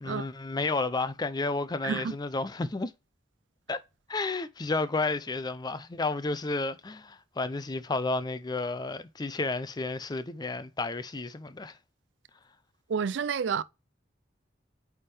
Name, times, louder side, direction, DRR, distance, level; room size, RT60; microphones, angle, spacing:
voice 1, 0.0-2.9 3.7-3.8 4.1-11.7, left 3 dB, 25° left, 0.5 m, -31 dB
voice 2, 12.9-13.6, right 6 dB, 80° right, 0.4 m, -29 dB
8.6 x 3.6 x 3.3 m
head